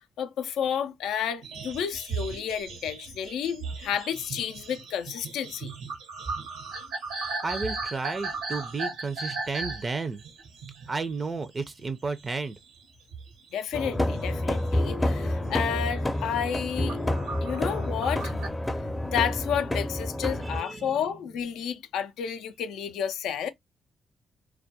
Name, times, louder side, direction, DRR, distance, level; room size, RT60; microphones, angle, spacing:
voice 1, 0.2-5.7 13.5-17.0 17.4-18.3 19.1-23.5, left 8 dB, 80° left, 0.3 m, -31 dB
sound 1, 1.4-11.9 12.1-12.8 13.1-14.6 15.1-15.3 15.6-15.9 16.4-18.5, right 4 dB, 85° right, 0.7 m, -37 dB
voice 2, 7.4-10.2 10.9-12.6 20.4-21.0, right 4 dB, 40° right, 0.4 m, -32 dB
sound 2, 13.7-20.6, left 1 dB, 15° left, 0.5 m, -29 dB
2.2 x 2.1 x 2.6 m
hypercardioid pair, 45°, 0 cm